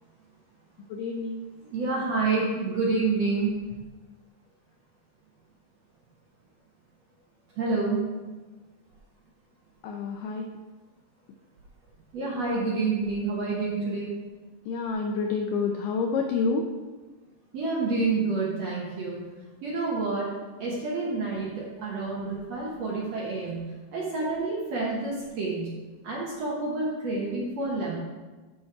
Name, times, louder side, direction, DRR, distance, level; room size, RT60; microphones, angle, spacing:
voice 1, 0.9-1.4 9.8-10.4 14.7-16.6, left 4 dB, 85° left, 3 dB, 1.9 m, -28 dB
voice 2, 1.6-3.5 7.6-8.0 12.1-14.1 17.5-19.2 19.6-20.3 20.6-25.7 26.0-28.0, right 3 dB, 60° right, -5 dB, 1.8 m, -28 dB
12.0 x 4.4 x 4.7 m, 1.3 s
omnidirectional pair, 4.5 m